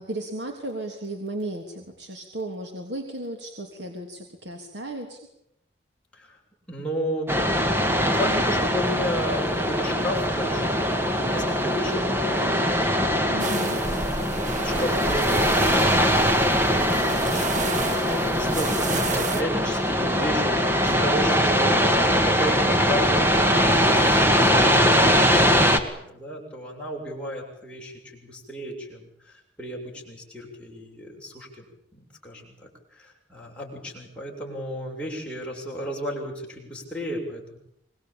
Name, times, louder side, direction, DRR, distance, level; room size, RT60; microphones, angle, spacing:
voice 1, 0.0-5.2 13.3-13.8, right 1 dB, 85° right, 3 dB, 3.1 m, -34 dB
voice 2, 6.7-7.3 7.7-13.5 13.8-21.8 22.1-31.6 31.9-37.6, equal, 5° left, -3 dB, 7.2 m, -34 dB
sound 1, 7.3-25.8, equal, 15° right, 2.1 m, -22 dB
sound 2, 13.4-19.4, right 3 dB, 45° right, 1.4 m, -32 dB
25.5 x 21.5 x 8.9 m, 0.77 s
head